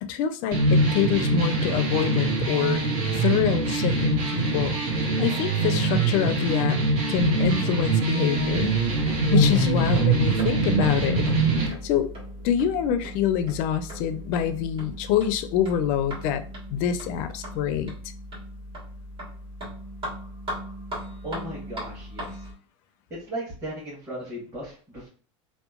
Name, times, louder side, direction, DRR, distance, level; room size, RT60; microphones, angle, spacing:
voice 1, 0.0-2.8 3.1-4.7 5.2-6.8 7.1-8.8 9.3-11.2 11.8-12.1 12.4-16.4 16.7-17.9, left 9 dB, 55° left, 10 dB, 0.4 m, -25 dB
sound 1, 0.5-11.7, right 2 dB, 65° right, 1.0 m, -23 dB
sound 2, 8.4-22.5, equal, 35° right, 1.4 m, -38 dB
voice 2, 21.2-22.3 23.1-25.1, right 1 dB, 15° right, -8 dB, 1.2 m, -36 dB
2.8 x 2.2 x 2.3 m, 0.42 s
hypercardioid pair, 105°, 17 cm